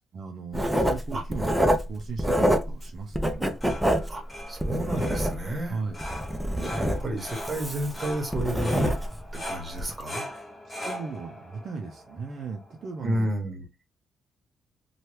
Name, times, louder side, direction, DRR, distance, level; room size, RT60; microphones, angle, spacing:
voice 1, 0.1-3.6 5.7-6.0 6.8-7.0 10.7-13.3, right 4 dB, 55° right, 0.5 m, -37 dB
Writing, 0.5-2.9 3.1-5.6 6.0-9.3 9.7-9.9, equal, 5° right, 0.5 m, -26 dB
sound 1, 3.3-13.0, left 1 dB, 20° left, 0.9 m, -41 dB
voice 2, 4.5-5.8 6.6-8.9 9.4-10.3 13.0-13.6, right 1 dB, 20° right, 1.1 m, -31 dB
2.8 x 2.3 x 3.2 m
cardioid pair, 105°, 0 cm